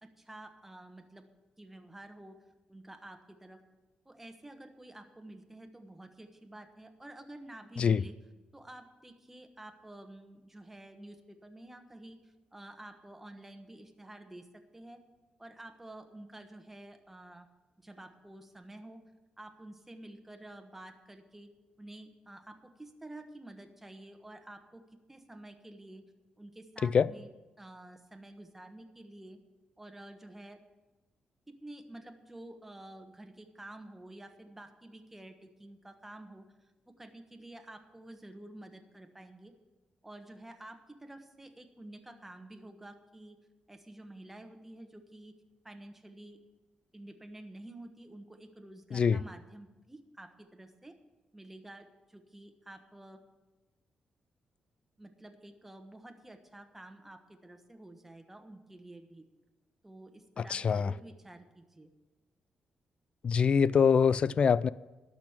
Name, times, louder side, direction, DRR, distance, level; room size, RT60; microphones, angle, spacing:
voice 1, 0.0-1.3 1.6-2.4 2.7-3.6 4.0-8.2 8.5-12.2 12.5-15.0 15.4-17.5 17.8-19.0 19.4-21.5 21.8-24.8 25.1-26.0 26.4-27.3 27.6-29.4 29.8-30.6 31.5-36.5 37.0-39.5 40.0-43.4 43.7-45.3 45.6-46.4 46.9-50.9 51.3-53.2 55.0-59.2 59.8-61.9, right 1 dB, 10° right, 1.2 m, -50 dB
voice 2, 60.5-60.9 63.2-64.7, left 6 dB, 50° left, 0.3 m, -24 dB
12.0 x 6.3 x 8.6 m
cardioid pair, 110°, 2 cm